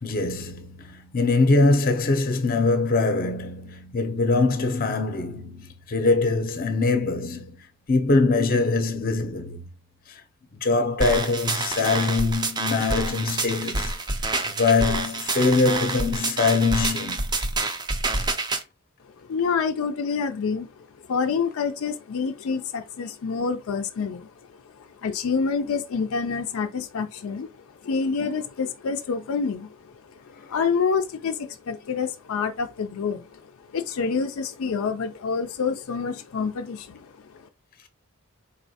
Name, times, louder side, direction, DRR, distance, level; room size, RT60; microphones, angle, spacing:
voice 1, 0.0-7.6 7.9-9.6 10.6-14.0 14.5-17.3, left 3 dB, 45° left, 0.7 m, -23 dB
sound 1, 11.0-18.6, right 3 dB, 20° right, 0.4 m, -28 dB
voice 2, 19.3-20.7 21.1-24.3 24.8-27.5 27.8-29.7 30.5-33.4 33.7-37.1, left 5 dB, 85° left, 0.4 m, -27 dB
4.1 x 3.1 x 2.7 m
head